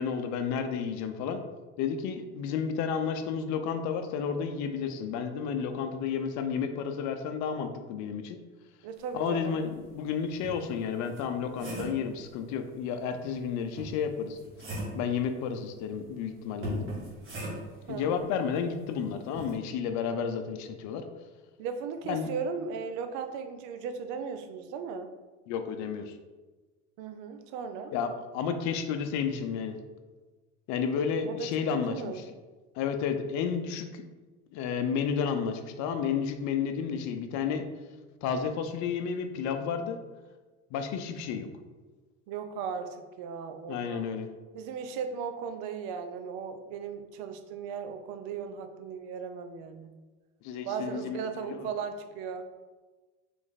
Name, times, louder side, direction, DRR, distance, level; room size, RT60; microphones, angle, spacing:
voice 1, 0.0-1.4 1.8-8.4 9.1-14.4 14.9-16.9 17.9-21.0 22.0-22.3 25.5-26.2 27.9-29.8 30.7-32.2 32.7-34.0 34.5-37.6 38.2-40.0 40.7-41.5 43.7-44.3 50.4-51.7, left 6 dB, 60° left, 7 dB, 0.6 m, -31 dB
voice 2, 8.8-9.6 17.9-18.3 21.6-25.1 27.0-27.9 31.3-32.2 42.3-44.0 44.5-49.9 50.6-52.5, right 6 dB, 65° right, 8 dB, 0.6 m, -37 dB
sound 1, 9.8-9.9 10.4-12.1 13.8-15.1 16.6-17.8 19.4-19.6, right 1 dB, 40° right, 1.3 m, -38 dB
3.4 x 3.0 x 4.0 m, 1.3 s
supercardioid pair, 100°, 33 cm